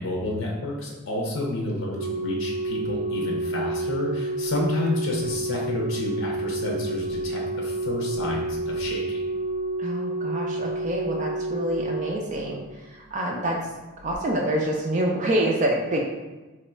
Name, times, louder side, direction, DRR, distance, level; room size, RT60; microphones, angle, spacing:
voice 1, 0.0-9.2, left 1 dB, 65° left, -1 dB, 0.6 m, -30 dB
Organ, 2.0-12.8 14.0-14.2, right 2 dB, 85° right, 0.6 m, -29 dB
voice 2, 9.8-13.6 14.0-16.0, right 1 dB, 35° right, -1 dB, 0.4 m, -26 dB
3.0 x 2.3 x 4.2 m, 1.2 s
head